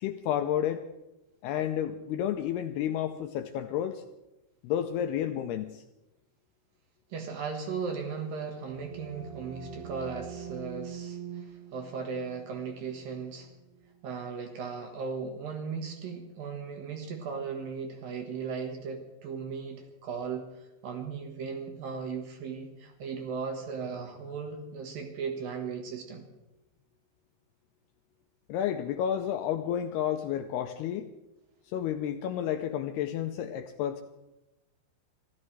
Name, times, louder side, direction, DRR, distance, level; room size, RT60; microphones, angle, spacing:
voice 1, 0.0-0.8 1.4-4.0 4.6-5.8 28.5-31.1 31.7-34.0, left 10 dB, 80° left, 7 dB, 2.4 m, -31 dB
voice 2, 7.1-13.5 14.0-20.5 20.8-26.2, right 5 dB, 60° right, 4 dB, 2.9 m, -37 dB
sound 1, 8.5-13.9, right 8 dB, 80° right, 3.6 m, -44 dB
26.0 x 14.0 x 3.3 m, 0.99 s
omnidirectional pair, 5.2 m